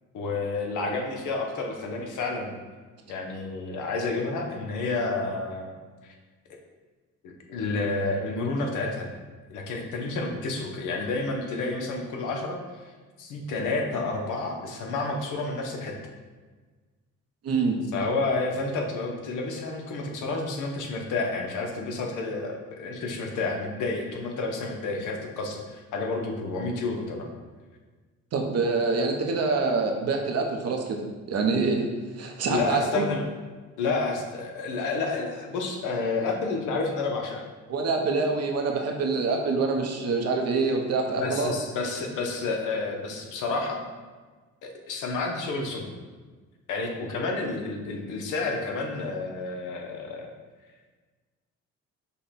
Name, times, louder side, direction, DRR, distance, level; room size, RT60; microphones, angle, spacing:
voice 1, 0.1-2.6 3.1-5.7 6.0-6.1 7.2-9.1 9.5-12.9 13.2-16.0 17.9-27.3 32.5-33.2 33.8-37.4 41.2-43.8 44.6-45.9 46.7-50.3, left 3 dB, 85° left, 2 dB, 0.8 m, -30 dB
voice 2, 17.4-17.8 28.3-31.0 31.3-31.9 32.2-33.0 37.7-41.5, right 4 dB, 55° right, 2 dB, 0.8 m, -25 dB
5.4 x 2.2 x 4.1 m, 1.4 s
cardioid pair, 90°, 30 cm